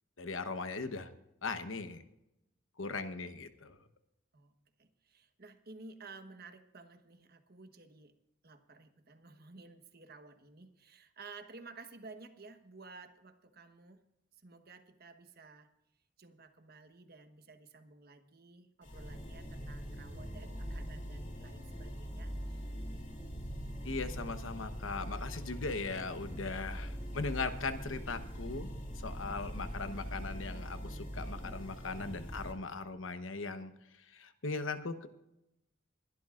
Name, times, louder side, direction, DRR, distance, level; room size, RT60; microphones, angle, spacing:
voice 1, 0.2-1.1 1.4-2.0 2.8-3.8 23.8-28.7 29.0-33.7 34.1-35.1, left 3 dB, 75° left, 9 dB, 1.0 m, -39 dB
voice 2, 4.8-8.1 8.4-14.0 14.4-15.7 16.2-22.7 29.7-30.0, right 3 dB, 50° right, 7 dB, 1.2 m, -54 dB
sound 1, 18.8-32.5, equal, 40° left, 2.4 m, -42 dB
22.0 x 12.0 x 2.5 m, 0.85 s
head